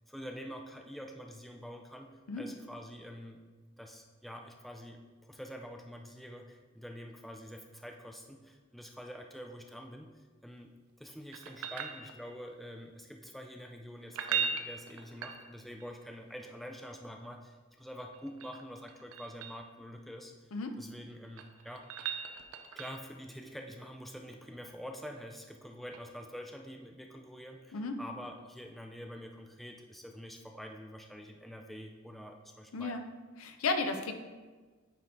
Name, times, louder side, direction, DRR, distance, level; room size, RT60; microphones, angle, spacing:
voice 1, 0.1-3.4 3.8-21.9 22.8-33.0, equal, ahead, 3 dB, 0.3 m, -46 dB
sound 1, 11.3-12.6 14.0-15.9 18.0-19.7 21.1-23.2 25.9-26.0, right 7 dB, 85° right, 0.6 m, -38 dB
voice 2, 32.7-33.0 33.4-34.1, left 3 dB, 80° left, 6 dB, 0.6 m, -33 dB
9.1 x 3.5 x 3.8 m, 1.4 s
head